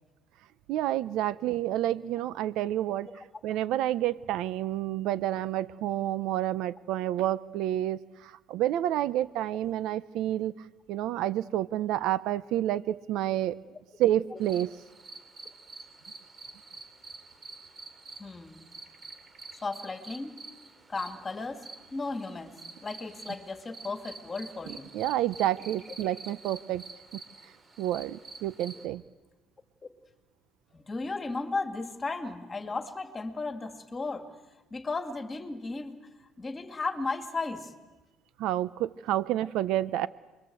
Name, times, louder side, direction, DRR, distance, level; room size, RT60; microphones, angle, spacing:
voice 1, 0.7-3.1 3.4-13.5 14.0-14.7 24.9-26.8 27.1-27.2 27.8-29.0 38.4-40.1, right 13 dB, 75° right, 16 dB, 0.9 m, -29 dB
sound 1, 14.4-28.9, right 3 dB, 25° right, 3.5 m, -48 dB
voice 2, 18.2-18.6 19.5-20.4 20.9-24.9 30.7-34.3 34.7-36.0 36.4-37.7, left 3 dB, 20° left, 6 dB, 2.5 m, -35 dB
28.5 x 22.5 x 8.0 m, 1.1 s
cardioid pair, 135°, 0 cm